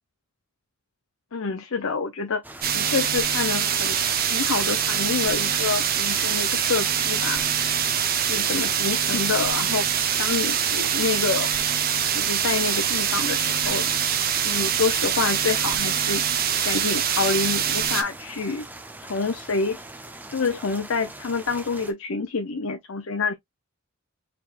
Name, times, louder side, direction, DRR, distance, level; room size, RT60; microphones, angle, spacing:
voice 1, 1.3-2.4 2.7-4.0 4.3-7.4 8.3-9.9 10.2-11.5 12.1-13.9 14.4-16.2 16.6-18.7 19.0-19.8 20.3-23.3, left 4 dB, 65° left, 0.6 m, -27 dB
sound 1, 2.4-21.9, right 2 dB, 10° right, 0.6 m, -42 dB
sound 2, 2.6-18.0, right 8 dB, 45° right, 0.7 m, -24 dB
4.7 x 3.5 x 2.4 m
head